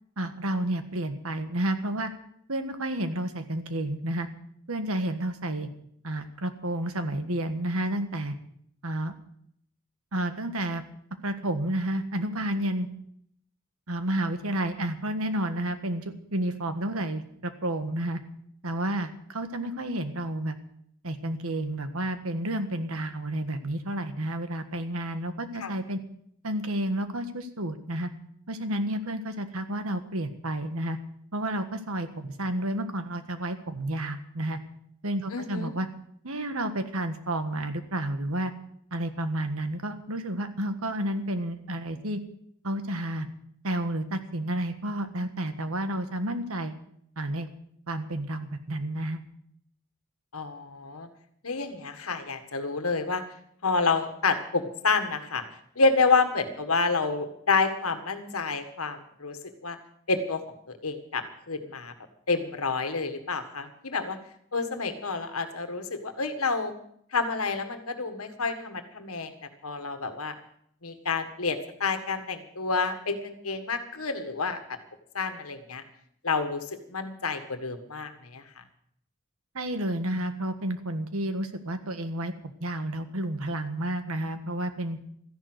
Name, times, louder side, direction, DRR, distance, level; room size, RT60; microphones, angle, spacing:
voice 1, 0.2-2.1 2.5-4.3 4.7-5.7 6.0-8.3 8.8-9.1 10.1-10.8 11.2-12.9 13.9-18.2 18.6-20.6 21.0-26.0 26.4-28.1 28.5-31.0 31.3-34.6 35.0-35.9 36.2-38.5 38.9-42.2 42.6-43.3 43.6-46.8 47.2-47.5 47.9-49.2 79.5-85.0, right 1 dB, 75° right, 9 dB, 1.5 m, -31 dB
voice 2, 35.3-35.7 50.3-51.1 51.4-53.2 53.6-55.4 55.8-59.4 59.6-59.8 60.1-60.4 60.8-61.9 62.3-64.2 64.5-66.7 67.1-69.3 69.6-70.3 70.8-74.6 75.1-75.8 76.2-78.4, left 4 dB, 75° left, 8 dB, 1.7 m, -28 dB
14.0 x 11.0 x 7.9 m, 0.68 s
head